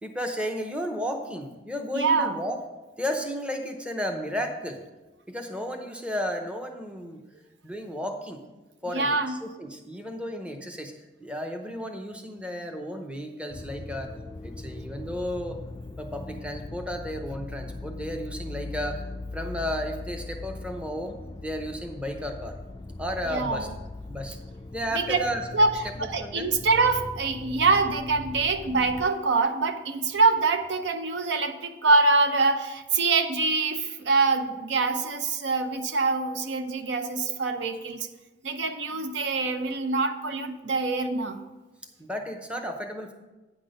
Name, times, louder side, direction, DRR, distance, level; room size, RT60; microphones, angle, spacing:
voice 1, 0.0-2.6 3.0-4.8 5.3-7.2 7.6-8.4 8.8-10.9 11.2-14.1 14.4-15.6 16.0-19.0 19.3-21.2 21.4-22.6 23.0-23.7 24.1-24.4 24.7-25.5 25.8-26.5 42.0-43.1, equal, 5° right, 4 dB, 0.7 m, -33 dB
voice 2, 1.9-2.4 8.9-9.4 23.3-23.7 24.9-25.2 25.5-25.7 26.0-38.1 38.4-41.4, right 3 dB, 70° right, 8 dB, 0.6 m, -24 dB
sound 1, 13.5-29.1, left 2 dB, 20° left, 0.3 m, -40 dB
9.3 x 6.0 x 5.2 m, 1.1 s
head